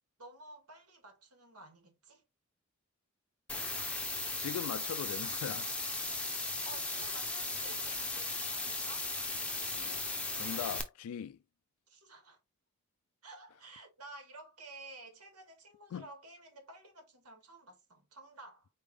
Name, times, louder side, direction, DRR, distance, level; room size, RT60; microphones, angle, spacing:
voice 1, 0.2-2.2 6.6-9.2 11.9-12.4 13.2-18.7, right 2 dB, 90° right, 2.0 m, -52 dB
sound 1, 3.5-10.8, left 2 dB, 5° left, 0.6 m, -37 dB
voice 2, 4.4-5.7 9.7-10.0 10.4-11.4 15.9-16.1, left 8 dB, 75° left, 0.3 m, -40 dB
4.6 x 3.3 x 3.3 m
head